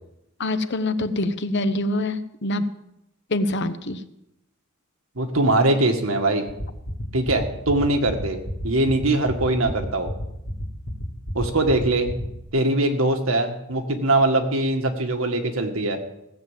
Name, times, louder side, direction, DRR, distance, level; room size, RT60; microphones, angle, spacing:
voice 1, 0.4-2.7 3.3-4.0, left 1 dB, 55° left, 11 dB, 0.9 m, -25 dB
voice 2, 5.2-6.4 7.1-8.4 8.6-10.1 11.4-12.1 12.5-16.0, right 2 dB, 85° right, 4 dB, 1.8 m, -22 dB
sound 1, 6.5-12.5, equal, 80° left, 2.5 m, -31 dB
16.5 x 7.6 x 7.5 m, 0.84 s
head